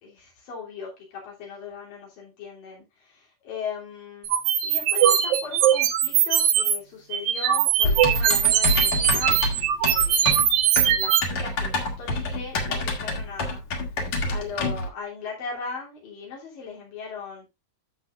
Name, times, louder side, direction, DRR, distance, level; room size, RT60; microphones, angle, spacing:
voice 1, 0.0-4.3 4.6-9.4 9.8-10.5 10.9-13.9 14.3-17.5, left 5 dB, 90° left, -3 dB, 4.9 m, -38 dB
sound 1, 4.2-6.8 7.1-11.2, right 10 dB, 70° right, 2.3 m, -21 dB
Typing, 7.8-14.9, left 2 dB, 60° left, 3.3 m, -27 dB
13.0 x 6.9 x 2.5 m, 0.22 s
omnidirectional pair, 3.8 m